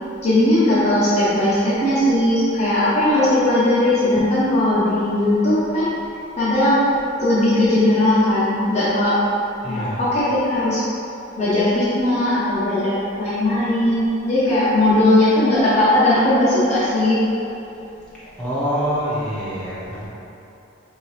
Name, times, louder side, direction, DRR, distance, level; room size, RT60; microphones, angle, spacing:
voice 1, 0.2-5.9 6.4-6.8 7.1-9.2 9.6-10.9 11.3-17.2, left 1 dB, 35° left, -11 dB, 0.8 m, -18 dB
voice 2, 9.6-10.0 18.4-20.1, equal, 5° left, -12 dB, 1.0 m, -25 dB
4.6 x 2.8 x 3.2 m, 2.9 s
head